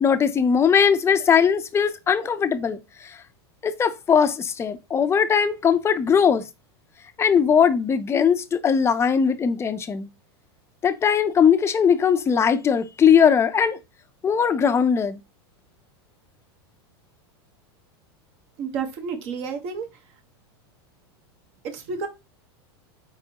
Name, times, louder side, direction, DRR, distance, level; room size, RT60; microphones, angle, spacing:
voice 1, 0.0-3.1 3.6-6.4 7.2-10.1 10.8-13.8 14.2-15.2, left 7 dB, 20° left, 0.6 m, -20 dB
voice 2, 18.6-19.9 21.6-22.1, right 5 dB, 50° right, 1.3 m, -30 dB
4.7 x 3.5 x 2.9 m
hypercardioid pair, 115°, 14 cm